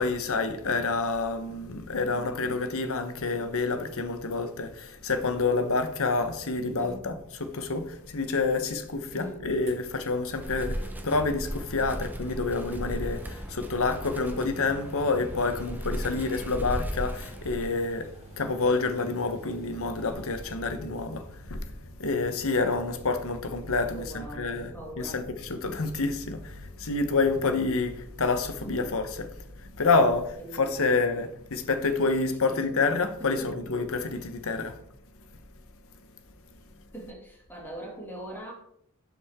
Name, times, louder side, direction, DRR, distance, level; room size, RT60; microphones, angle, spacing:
voice 1, 0.0-34.8, left 3 dB, 65° left, 1.1 m, -28 dB
voice 2, 2.0-2.4 6.8-7.1 9.1-9.6 23.9-25.2 28.6-29.0 30.4-31.1 32.2-32.6 33.2-33.6 36.9-38.5, right 1 dB, 10° left, 2.5 m, -42 dB
sound 1, 9.7-20.5, right 2 dB, 30° right, 2.5 m, -52 dB
Wind, 10.3-18.0, equal, 10° right, 1.0 m, -36 dB
sound 2, 20.1-30.3, equal, 85° right, 1.6 m, -48 dB
12.0 x 5.9 x 3.7 m
head